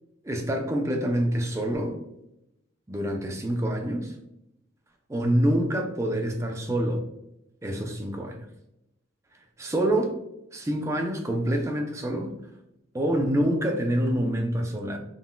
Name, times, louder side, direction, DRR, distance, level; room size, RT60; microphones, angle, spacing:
voice 1, 0.2-2.0 2.9-4.2 5.1-7.0 7.6-8.5 9.6-10.2 10.5-12.3 12.9-15.0, right 1 dB, 15° right, 3 dB, 0.4 m, -26 dB
3.7 x 2.4 x 2.2 m, 0.86 s
head